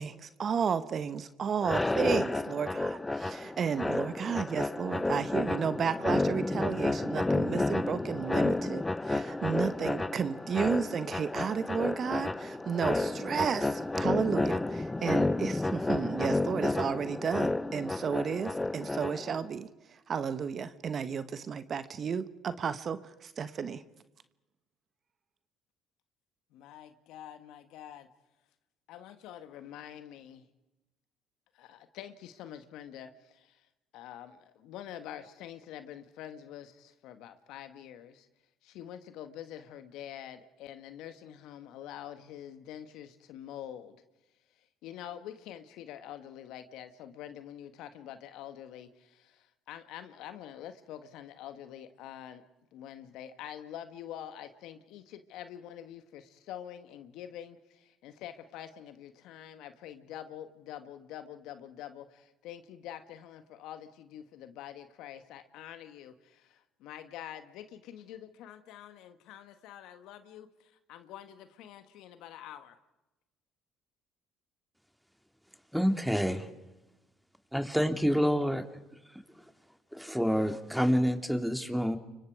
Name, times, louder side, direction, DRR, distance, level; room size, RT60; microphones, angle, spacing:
voice 1, 0.0-19.7 20.1-23.8, right 6 dB, 50° right, 1.4 m, -33 dB
sound 1, 1.6-19.4, left 2 dB, 15° left, 1.0 m, -31 dB
voice 2, 26.5-28.1 28.9-30.5 31.5-33.6 33.9-38.3 38.6-44.0 44.8-52.4 52.7-72.8, left 10 dB, 70° left, 1.8 m, -46 dB
voice 3, 75.7-76.5 77.5-78.6 79.9-82.0, equal, ahead, 2.8 m, -27 dB
29.5 x 24.5 x 4.9 m
hypercardioid pair, 65°, 0 cm